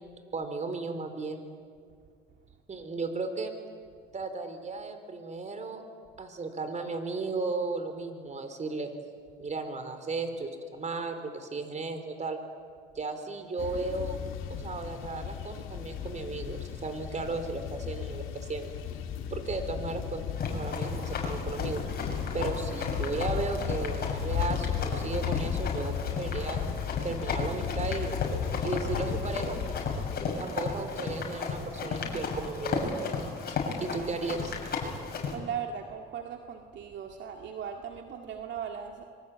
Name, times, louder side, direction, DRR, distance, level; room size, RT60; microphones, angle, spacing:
voice 1, 0.3-1.5 2.7-3.5 4.1-5.8 6.2-8.9 9.4-12.4 12.9-14.2 14.5-18.7 19.3-21.8 22.3-26.6 27.0-28.2 28.6-29.9 30.4-34.5, right 3 dB, 35° right, 8 dB, 4.3 m, -35 dB
sound 1, 13.6-30.2, left 9 dB, 75° left, 2.6 m, -35 dB
Run, 20.4-35.3, left 4 dB, 50° left, 6.8 m, -34 dB
voice 2, 35.3-39.0, right 7 dB, 65° right, 3 dB, 2.2 m, -38 dB
25.5 x 23.0 x 8.7 m, 2.1 s
supercardioid pair, 85°, 21 cm